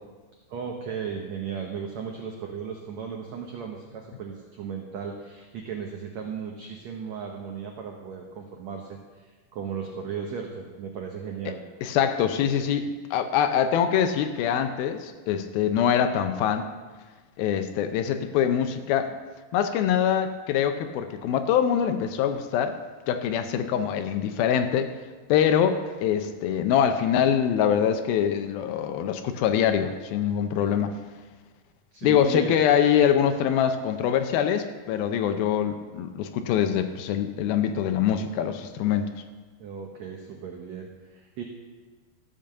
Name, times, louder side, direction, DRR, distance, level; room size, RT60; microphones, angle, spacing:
voice 1, 0.5-11.6 31.9-32.6 39.6-41.4, right 6 dB, 80° right, 2 dB, 1.5 m, -36 dB
voice 2, 11.8-16.7 17.4-19.2 19.5-22.7 23.1-24.9 25.3-31.0 32.0-39.1, left 9 dB, 80° left, 8 dB, 2.4 m, -24 dB
14.0 x 7.3 x 6.6 m, 1.4 s
omnidirectional pair, 4.6 m